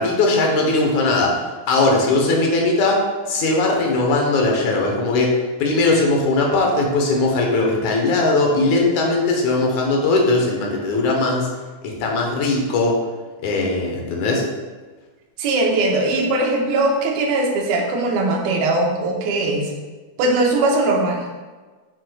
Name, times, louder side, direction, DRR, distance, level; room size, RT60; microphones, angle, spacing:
voice 1, 0.0-1.4 1.7-11.5 11.8-13.0 13.4-14.4, left 2 dB, 65° left, 0 dB, 2.1 m, -19 dB
voice 2, 15.4-19.7 20.2-21.2, right 2 dB, 85° right, 1 dB, 2.7 m, -20 dB
8.1 x 6.4 x 2.3 m, 1.3 s
omnidirectional pair, 4.2 m